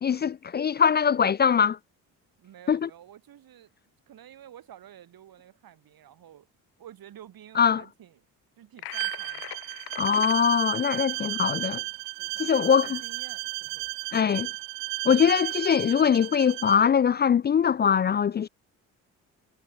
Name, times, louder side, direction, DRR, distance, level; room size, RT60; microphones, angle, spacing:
voice 1, 0.0-1.8 2.7-2.9 7.6-7.8 10.0-11.8 12.4-13.0 14.1-14.5 15.0-18.5, left 7 dB, 25° left, 0.4 m, -22 dB
voice 2, 2.4-3.7 4.1-6.5 6.8-8.2 8.6-9.5 11.1-11.5 12.2-14.4, right 11 dB, 60° right, 5.6 m, -50 dB
sound 1, 8.8-10.4, left 14 dB, 65° left, 5.1 m, -41 dB
Bowed string instrument, 8.9-16.8, right 31 dB, 80° right, 1.1 m, -34 dB
hypercardioid pair, 60°, 40 cm